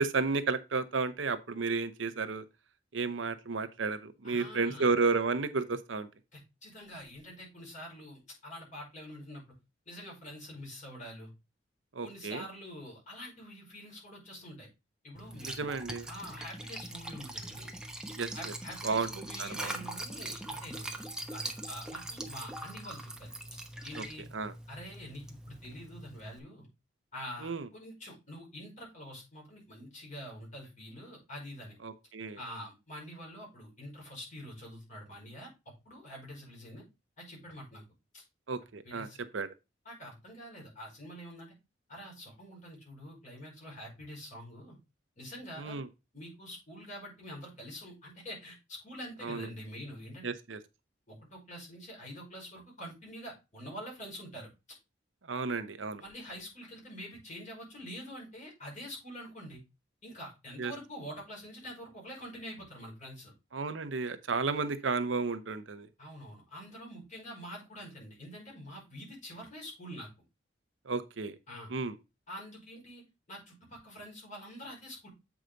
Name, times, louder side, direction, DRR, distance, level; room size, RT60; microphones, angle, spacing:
voice 1, 0.0-2.4 2.9-6.1 11.9-12.4 15.4-16.1 18.2-18.5 18.8-19.1 19.4-19.7 24.0-24.1 24.3-24.5 27.4-27.7 31.8-32.4 38.5-39.1 39.3-39.5 45.6-45.9 49.2-49.5 50.2-50.6 55.3-56.0 60.6-60.7 63.5-65.9 70.9-71.3 71.7-71.9, right 4 dB, 80° right, 0.8 m, -32 dB
voice 2, 4.2-4.9 6.3-9.4 9.9-11.3 12.0-14.7 15.0-15.7 16.1-17.7 18.3-21.0 21.3-23.3 23.8-24.3 24.7-26.7 27.1-31.8 32.4-36.8 37.2-37.8 38.1-38.2 38.8-39.3 39.9-41.5 41.9-44.8 45.2-45.8 46.1-50.2 51.1-54.5 56.0-59.6 60.0-63.3 66.0-70.1 71.5-71.7 72.3-73.0 73.3-75.1, equal, 45° left, 5.2 m, -46 dB
Liquid, 15.2-26.4, right 1 dB, 5° right, 1.0 m, -42 dB
8.0 x 4.9 x 3.9 m
head